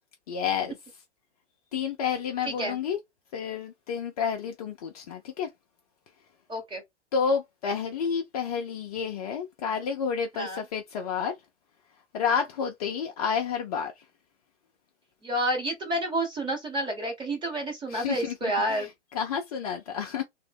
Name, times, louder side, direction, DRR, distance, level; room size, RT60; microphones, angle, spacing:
voice 1, 0.3-0.8 1.7-3.0 3.3-5.5 7.1-11.3 12.1-14.0 17.9-20.2, left 6 dB, 35° left, 0.4 m, -30 dB
voice 2, 2.4-2.8 6.5-6.8 10.3-10.6 15.2-18.9, right 1 dB, 15° right, 1.0 m, -29 dB
2.6 x 2.2 x 3.4 m
hypercardioid pair, 125°, 36 cm